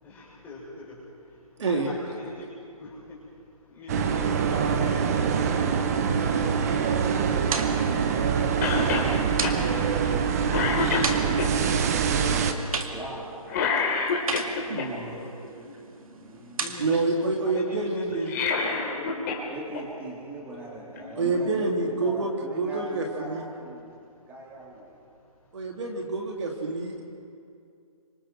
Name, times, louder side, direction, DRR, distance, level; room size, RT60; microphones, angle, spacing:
voice 1, 0.0-8.3 14.8-15.8 16.6-17.0 17.4-19.3 20.9-21.9, left 2 dB, 10° left, -7 dB, 6.1 m, -42 dB
sound 1, 3.9-12.5, right 6 dB, 25° right, 1.1 m, -24 dB
sound 2, 6.9-17.1, right 4 dB, 65° right, 2.2 m, -37 dB
Cough, 8.6-9.1 9.4-9.6 10.1-10.2 10.5-11.5 13.5-14.9 18.1-19.4 19.7-19.8 21.0-21.1, left 5 dB, 30° left, 3.0 m, -27 dB
voice 2, 12.2-12.6 12.9-13.5 16.1-16.8 19.5-23.9 24.3-24.9, right 2 dB, 10° right, -4 dB, 3.4 m, -42 dB
voice 3, 14.7-15.2 16.8-18.4 21.2-23.4 25.5-27.0, right 3 dB, 50° right, 1 dB, 3.0 m, -27 dB
29.5 x 25.5 x 4.6 m, 2.4 s
hypercardioid pair, 160°, 19 cm